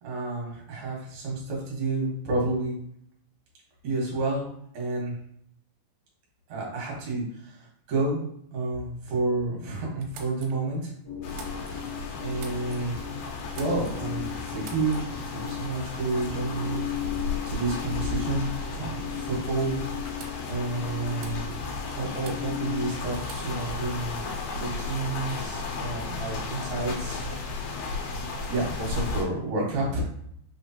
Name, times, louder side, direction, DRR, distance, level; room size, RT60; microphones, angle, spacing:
voice 1, 0.0-2.8 3.8-5.1 6.5-8.2 8.5-10.9 12.2-12.9 13.5-16.9 17.5-19.8 20.5-21.5 21.9-27.2 27.4-28.0 28.5-30.0, right 2 dB, 55° right, -3 dB, 2.3 m, -30 dB
sound 1, 10.0-11.9 12.3-13.0 13.4-14.1 14.5-15.3 16.3-16.5 16.8-17.2 19.2-19.3 19.5-19.6 20.0-20.7 21.1-21.8 22.1-22.7 23.1-23.8, right 5 dB, 85° right, 2.4 m, -48 dB
sound 2, 11.0-22.9, left 10 dB, 50° left, 1.2 m, -37 dB
sound 3, 11.2-29.3, left 3 dB, 75° left, 2.1 m, -34 dB
5.5 x 3.0 x 2.8 m, 0.69 s
omnidirectional pair, 4.4 m